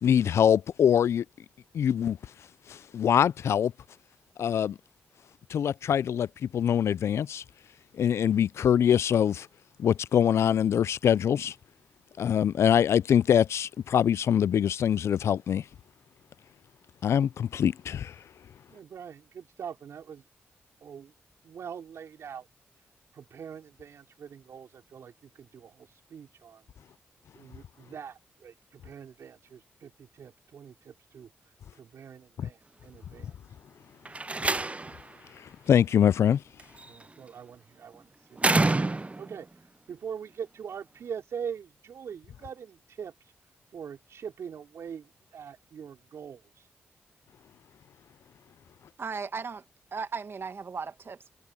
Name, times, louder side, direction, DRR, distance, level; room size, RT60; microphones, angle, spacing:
voice 1, 0.0-1.2 1.7-2.2 2.7-3.7 4.4-4.8 5.5-7.4 7.9-9.5 9.8-11.5 12.2-15.6 17.0-18.2 35.4-36.4, left 9 dB, 70° left, 0.4 m, -24 dB
voice 2, 18.7-20.2 20.8-21.1 21.4-22.5 23.1-26.6 27.3-31.3 31.7-33.4 36.9-39.5 39.9-43.1 43.7-46.5, right 7 dB, 75° right, 4.0 m, -43 dB
Slam, 34.1-35.1 36.6-37.0 38.4-39.4, right 2 dB, 25° right, 0.7 m, -27 dB
voice 3, 49.0-49.6 49.9-51.3, right 5 dB, 55° right, 2.0 m, -36 dB
supercardioid pair, 40°, 5 cm